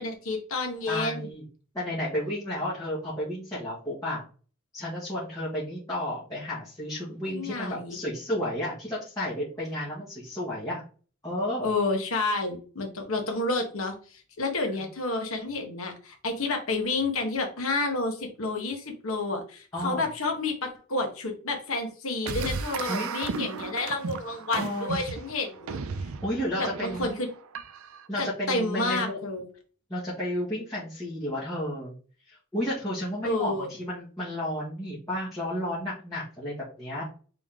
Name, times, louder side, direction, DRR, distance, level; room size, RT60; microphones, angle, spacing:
voice 1, 0.0-1.3 7.3-8.0 11.6-25.8 26.6-27.3 28.2-29.5 33.2-33.7, left 3 dB, 75° left, 3 dB, 1.2 m, -30 dB
voice 2, 0.9-1.4 1.7-4.2 4.7-10.8 11.2-11.7 19.7-20.1 22.9-23.2 24.6-25.0 26.2-27.1 28.1-29.2 29.9-31.9 32.3-37.0, left 1 dB, 15° left, -9 dB, 1.4 m, -32 dB
sound 1, 22.3-28.1, right 5 dB, 75° right, 0.5 m, -35 dB
3.7 x 3.7 x 3.6 m, 0.39 s
head